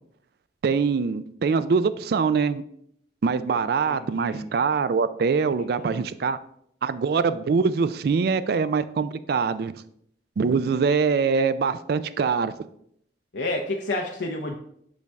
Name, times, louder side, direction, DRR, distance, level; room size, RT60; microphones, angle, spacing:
voice 1, 0.6-2.6 3.2-6.4 6.8-9.7 10.4-12.5, right 5 dB, 60° right, 14 dB, 0.4 m, -23 dB
voice 2, 3.9-4.5 5.9-6.1 13.3-14.6, left 2 dB, 85° left, 2 dB, 0.7 m, -30 dB
6.6 x 5.2 x 3.5 m, 0.70 s
head